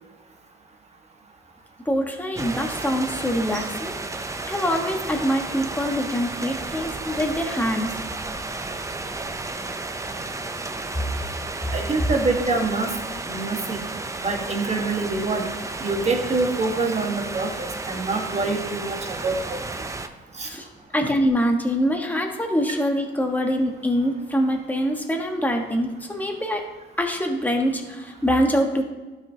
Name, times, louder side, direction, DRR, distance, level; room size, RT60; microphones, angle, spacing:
voice 1, 1.8-3.9 4.5-8.0 20.4-20.7 20.9-26.7 27.0-28.8, equal, 10° left, 2 dB, 1.2 m, -24 dB
sound 1, 2.4-20.1, right 3 dB, 15° right, 0.5 m, -32 dB
voice 2, 11.7-12.9 13.3-13.8 14.2-15.5 15.8-19.6 20.4-20.5, right 3 dB, 35° right, 2 dB, 1.5 m, -25 dB
12.0 x 5.3 x 2.8 m, 1.2 s
cardioid pair, 90°, 20 cm